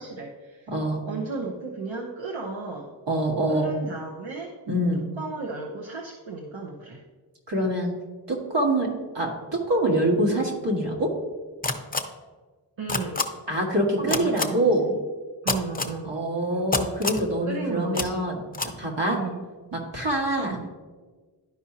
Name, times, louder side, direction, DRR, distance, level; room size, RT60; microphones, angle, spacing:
voice 1, 0.0-0.7 1.1-3.0 3.5-4.6 4.9-7.0 7.6-7.7 12.8-13.2 14.0-15.0 15.4-16.1 16.5-16.7 17.5-18.3 19.1-19.5 20.4-20.7, right 3 dB, 85° right, 0 dB, 0.8 m, -34 dB
voice 2, 0.7-1.0 3.1-3.7 4.7-5.0 7.5-7.9 8.3-8.9 9.1-11.1 13.5-14.8 16.0-18.4 18.6-19.2 19.7-20.6, right 1 dB, 70° right, -2 dB, 1.7 m, -25 dB
sound 1, 11.6-12.0 12.9-13.2 14.1-14.4 15.5-15.9 16.7-17.2 17.9-18.1 18.5-18.7, left 3 dB, 20° left, 0.7 m, -25 dB
11.5 x 4.8 x 2.8 m, 1.4 s
cardioid pair, 45°, 44 cm